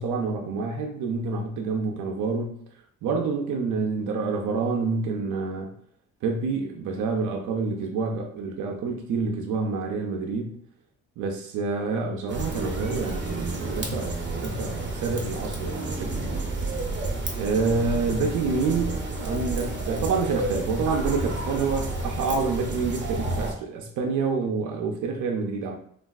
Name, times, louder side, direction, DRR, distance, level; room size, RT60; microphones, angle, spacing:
voice 1, 0.0-2.6 3.0-5.7 6.2-10.6 11.2-16.5 17.3-25.8, right 4 dB, 80° right, 2 dB, 0.5 m, -28 dB
sound 1, 12.3-23.5, right 2 dB, 40° right, 0.7 m, -30 dB
3.2 x 2.3 x 2.3 m, 0.64 s
cardioid pair, 100°, 30 cm